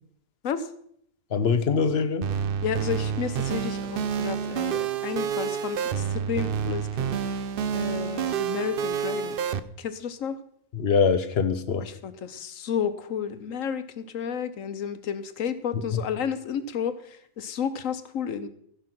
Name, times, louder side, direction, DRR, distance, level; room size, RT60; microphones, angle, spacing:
voice 1, 1.3-2.3 10.7-11.9 15.9-16.0, left 5 dB, 55° left, 1.0 m, -23 dB
sound 1, 2.2-9.6, right 8 dB, 55° right, 0.6 m, -28 dB
voice 2, 2.6-7.2 7.7-9.4 9.8-10.4 11.8-18.5, left 7 dB, 75° left, 1.2 m, -32 dB
15.0 x 5.7 x 6.0 m
omnidirectional pair, 1.4 m